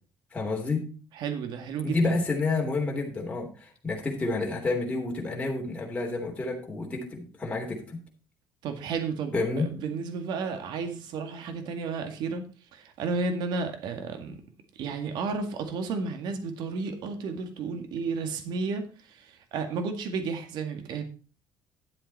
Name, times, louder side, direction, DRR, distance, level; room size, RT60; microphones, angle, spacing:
voice 1, 0.3-0.9 1.8-8.0 9.3-9.7, left 3 dB, 15° left, -1 dB, 3.3 m, -29 dB
voice 2, 1.2-2.2 8.6-12.4 12.7-14.4 14.8-21.0, right 4 dB, 65° right, 6 dB, 2.0 m, -32 dB
12.0 x 8.0 x 4.3 m, 0.37 s
cardioid pair, 145°, 8 cm